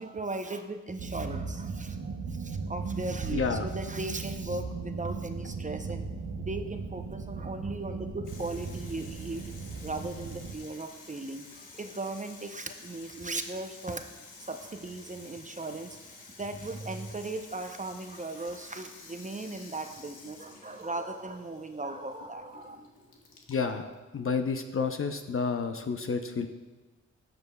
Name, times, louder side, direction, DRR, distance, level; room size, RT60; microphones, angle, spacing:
voice 1, 0.0-6.1 6.4-9.5 9.8-14.0 14.4-16.0 16.4-22.8, right 2 dB, 25° right, 6 dB, 0.7 m, -37 dB
sound 1, 1.0-10.6, right 4 dB, 85° right, 0.9 m, -37 dB
voice 2, 3.3-3.7 23.5-26.5, left 5 dB, 45° left, 6 dB, 0.7 m, -30 dB
Water tap faucet / Sink (filling or washing), 8.2-25.7, left 3 dB, 85° left, 1.2 m, -51 dB
15.5 x 5.3 x 2.3 m, 1.2 s
cardioid pair, 50°, 30 cm